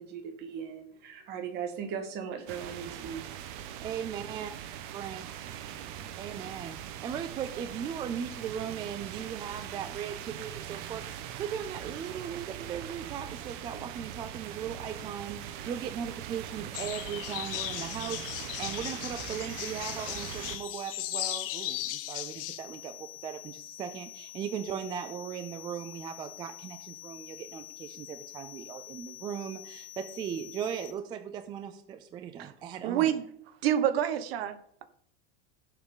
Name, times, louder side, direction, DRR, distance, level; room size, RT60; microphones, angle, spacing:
voice 1, 0.0-3.2, right 7 dB, 35° right, 6 dB, 1.7 m, -38 dB
sound 1, 2.5-20.6, right 10 dB, 55° right, 1.1 m, -41 dB
voice 2, 3.8-4.5 4.9-5.2 6.2-33.1, right 8 dB, 15° right, 9 dB, 0.4 m, -38 dB
sound 2, 16.7-22.6, left 15 dB, 65° left, 0.9 m, -37 dB
sound 3, 19.5-30.9, left 14 dB, 80° left, 1.8 m, -47 dB
voice 3, 32.8-33.2 33.6-34.8, right 10 dB, 75° right, 12 dB, 1.2 m, -28 dB
16.5 x 7.2 x 3.8 m, 0.65 s
supercardioid pair, 170°, 30 cm